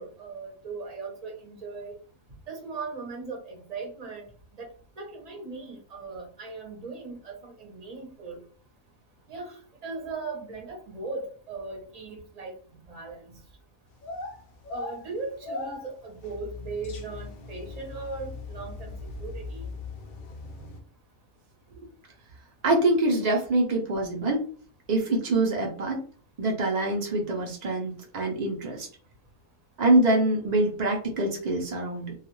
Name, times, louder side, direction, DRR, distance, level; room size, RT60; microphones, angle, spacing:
voice 1, 0.0-1.9 2.5-4.2 4.5-4.7 5.0-8.4 9.3-13.3 14.7-18.9 19.2-19.7, right 3 dB, 40° right, 1 dB, 0.6 m, -38 dB
sound 1, 13.9-20.8, left 3 dB, 85° left, 0.4 m, -39 dB
voice 2, 22.6-24.4 24.9-26.0 26.4-28.9 29.8-32.1, right 2 dB, 85° right, 0 dB, 0.3 m, -25 dB
2.3 x 2.3 x 3.0 m, 0.43 s
omnidirectional pair, 1.5 m